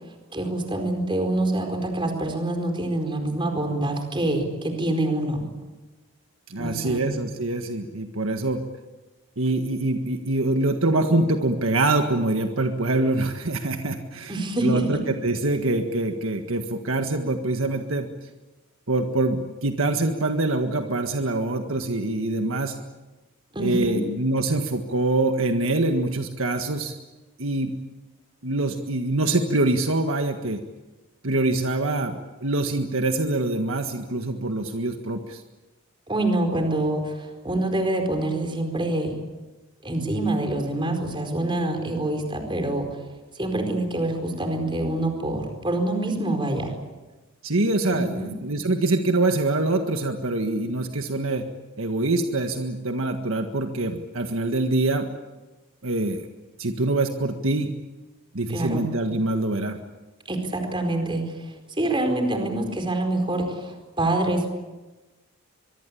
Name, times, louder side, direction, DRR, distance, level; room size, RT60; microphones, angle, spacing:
voice 1, 0.3-5.4 6.6-7.2 14.3-15.0 23.5-24.0 36.1-39.1 39.8-42.9 43.3-46.7 47.9-48.3 58.5-58.8 60.3-64.5, right 1 dB, 20° right, 5 dB, 4.6 m, -26 dB
voice 2, 6.5-8.6 9.4-14.3 14.6-18.1 18.9-22.7 23.6-26.9 27.4-27.7 28.4-30.6 31.2-35.4 47.4-51.4 51.8-55.1 55.8-56.3 56.6-57.7 58.3-59.8, right 2 dB, 65° right, 5 dB, 1.7 m, -24 dB
24.0 x 23.5 x 8.6 m, 1.2 s
head